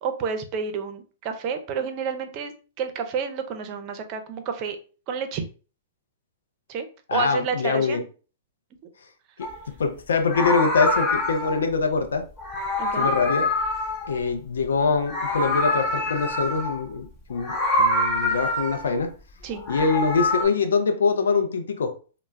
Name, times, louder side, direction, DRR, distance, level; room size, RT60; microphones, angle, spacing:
voice 1, 0.0-4.8 5.1-5.4 6.7-8.1 12.8-13.1 19.4-19.6, right 5 dB, 40° right, 0.5 m, -30 dB
voice 2, 7.1-8.0 9.8-12.3 13.0-13.5 14.1-19.1 19.7-21.9, left 4 dB, 75° left, 0.5 m, -24 dB
Meow, 9.4-9.6 10.2-11.7 12.4-14.7 14.9-16.8 17.4-19.0 19.5-20.5, left 1 dB, 35° left, 0.7 m, -25 dB
2.1 x 2.0 x 3.3 m
figure-of-eight pair, 110°, 0 cm